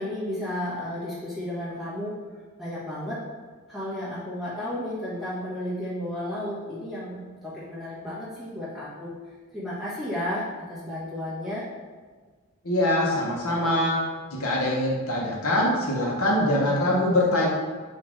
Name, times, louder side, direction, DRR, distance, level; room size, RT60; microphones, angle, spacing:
voice 1, 0.0-2.2 2.6-3.3 3.7-9.1 9.5-11.7, left 1 dB, ahead, -11 dB, 1.4 m, -33 dB
voice 2, 12.6-14.0 14.4-17.5, left 1 dB, 65° left, -3 dB, 0.9 m, -23 dB
4.1 x 2.6 x 4.5 m, 1.5 s
head